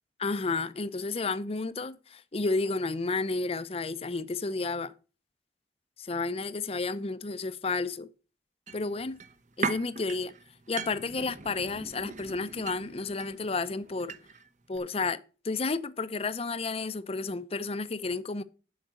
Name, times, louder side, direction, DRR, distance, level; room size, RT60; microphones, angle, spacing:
voice 1, 0.2-4.9 6.0-8.1 8.7-9.2 9.6-10.3 10.7-14.1 14.7-15.2 15.4-18.4, left 3 dB, 35° left, 0.6 m, -31 dB
sound 1, 8.7-14.5 14.8-14.9, right 4 dB, 45° right, 0.8 m, -39 dB
7.9 x 6.0 x 7.5 m
head